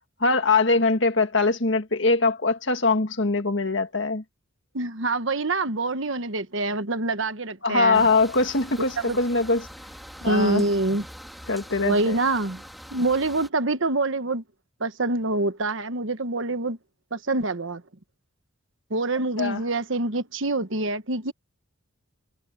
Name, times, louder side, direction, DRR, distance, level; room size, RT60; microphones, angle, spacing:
voice 1, 0.2-4.2 7.6-9.7 10.2-10.6 11.5-12.2 19.4-19.6, left 3 dB, 60° left, 1.9 m, -22 dB
voice 2, 4.7-8.1 9.0-9.2 10.2-11.0 11.8-12.6 12.9-14.4 14.8-16.8 17.1-17.8 18.9-21.3, right 2 dB, 65° right, 1.2 m, -25 dB
sound 1, 7.9-13.5, equal, ahead, 2.0 m, -43 dB
head